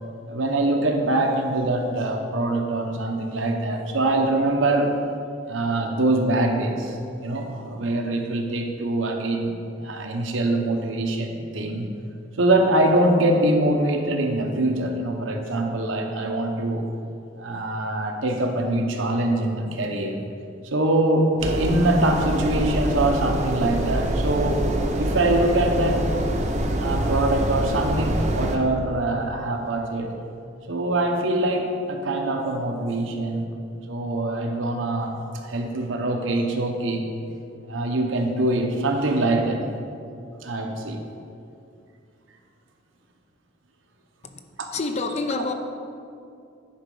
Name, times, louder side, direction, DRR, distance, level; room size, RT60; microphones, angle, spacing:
voice 1, 0.3-4.9 5.5-7.0 7.2-9.5 9.8-11.9 12.4-16.9 17.4-20.2 20.7-24.6 25.0-26.0 26.8-30.1 30.7-33.5 33.9-35.2 35.4-37.0 37.6-39.6 40.4-41.0, right 1 dB, 85° right, 3 dB, 0.9 m, -23 dB
sound 1, 21.4-28.6, right 1 dB, 40° right, 0.8 m, -25 dB
voice 2, 44.7-45.5, left 3 dB, 35° left, 6 dB, 0.5 m, -27 dB
10.5 x 4.3 x 5.4 m, 2.5 s
head